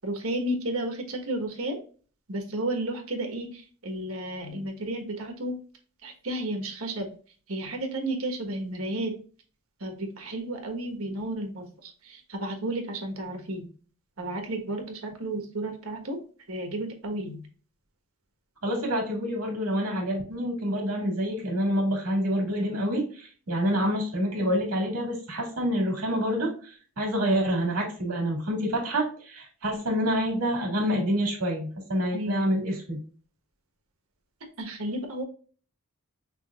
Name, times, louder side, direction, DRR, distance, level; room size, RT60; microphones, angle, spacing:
voice 1, 0.0-1.8 2.3-5.6 6.0-7.1 7.5-9.1 9.8-13.6 14.2-16.2 16.5-17.4 32.1-32.4 34.6-35.2, right 1 dB, 70° right, 3 dB, 1.3 m, -32 dB
voice 2, 18.6-33.0, equal, 85° right, 0 dB, 2.1 m, -27 dB
6.0 x 3.1 x 2.4 m, 0.40 s
head